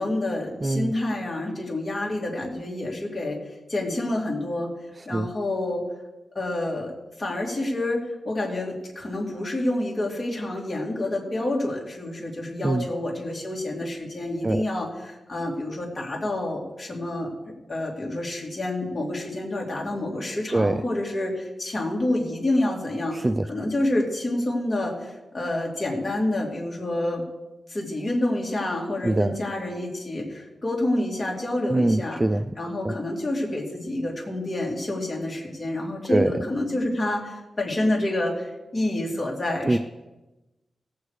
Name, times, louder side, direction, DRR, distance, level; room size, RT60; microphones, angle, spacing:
voice 1, 0.0-3.4 3.7-4.7 5.1-5.8 6.3-6.9 7.2-17.3 17.7-23.2 23.5-27.2 27.7-32.2 32.6-39.8, left 1 dB, 25° left, -2 dB, 2.7 m, -28 dB
voice 2, 0.6-0.9 5.1-5.3 12.6-12.9 14.4-14.6 20.5-20.8 23.1-23.5 29.0-29.4 31.7-32.5 32.8-32.9 36.1-36.3 39.7-39.8, right 2 dB, 20° right, 10 dB, 0.3 m, -23 dB
17.5 x 8.0 x 4.8 m, 1.0 s
wide cardioid pair, 145°, 0 cm